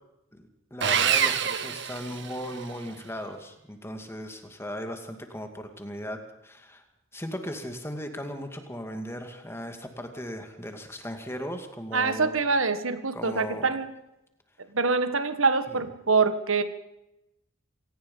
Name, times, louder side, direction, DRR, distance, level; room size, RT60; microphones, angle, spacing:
voice 1, 0.7-6.8 7.1-12.3 13.1-13.7 15.7-15.8, equal, 10° left, 6 dB, 2.3 m, -37 dB
Sawing, 0.8-2.7, right 8 dB, 60° right, 1.5 m, -26 dB
voice 2, 11.9-13.9 14.7-16.6, right 4 dB, 80° right, 11 dB, 1.6 m, -25 dB
26.5 x 18.5 x 5.6 m, 0.88 s
head